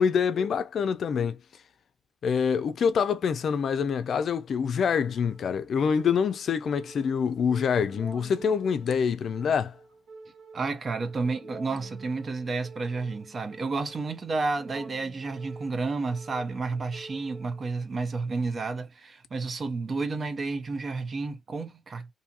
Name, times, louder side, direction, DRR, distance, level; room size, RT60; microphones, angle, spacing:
voice 1, 0.0-1.4 2.2-9.7, left 6 dB, 55° left, 0.4 m, -26 dB
sound 1, 4.9-17.9, right 3 dB, 65° right, 1.1 m, -48 dB
voice 2, 10.5-22.1, right 3 dB, 40° right, 0.6 m, -31 dB
2.6 x 2.4 x 2.7 m
cardioid pair, 90°, 0 cm